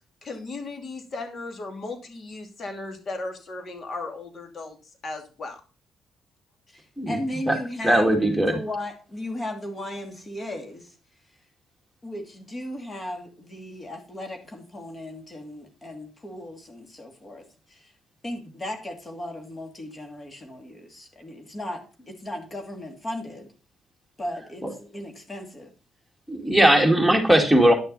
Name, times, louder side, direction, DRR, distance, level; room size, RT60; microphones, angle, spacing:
voice 1, 0.0-4.8 5.0-5.6, left 3 dB, 50° left, 5 dB, 2.7 m, -36 dB
voice 2, 6.7-8.2 8.4-10.9 12.0-17.9 18.2-23.5 24.2-24.6 24.9-25.7, left 1 dB, 30° left, 3 dB, 2.6 m, -36 dB
voice 3, 7.8-8.6 26.3-27.7, right 1 dB, ahead, 2 dB, 2.3 m, -18 dB
10.5 x 6.5 x 4.1 m, 0.34 s
cardioid pair, 90°, 0 cm